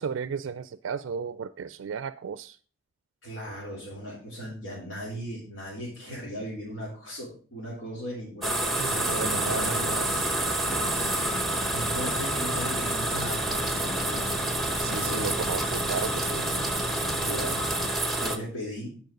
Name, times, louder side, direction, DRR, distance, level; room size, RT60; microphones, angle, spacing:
voice 1, 0.0-2.6 8.8-10.3 10.7-11.2 14.8-16.4, right 6 dB, 85° right, 14 dB, 0.4 m, -34 dB
voice 2, 3.2-10.2 11.7-14.4 14.8-15.5 17.2-17.6 18.1-19.0, equal, 80° left, -7 dB, 3.6 m, -37 dB
sound 1, 8.4-18.4, right 1 dB, ahead, 0.8 m, -28 dB
sound 2, 8.9-17.9, left 2 dB, 60° left, 2.0 m, -39 dB
9.2 x 5.5 x 5.2 m, 0.41 s
head